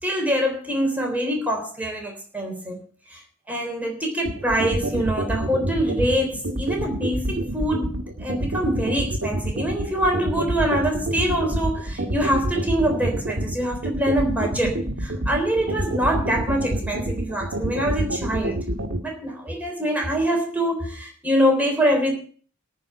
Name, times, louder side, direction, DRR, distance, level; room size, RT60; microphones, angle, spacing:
voice 1, 0.0-2.8 3.1-3.2 3.5-18.6 19.0-22.1, equal, 5° right, 0 dB, 3.6 m, -24 dB
sound 1, 4.3-19.0, right 1 dB, 55° right, 1.8 m, -26 dB
14.0 x 5.7 x 9.4 m, 0.44 s
head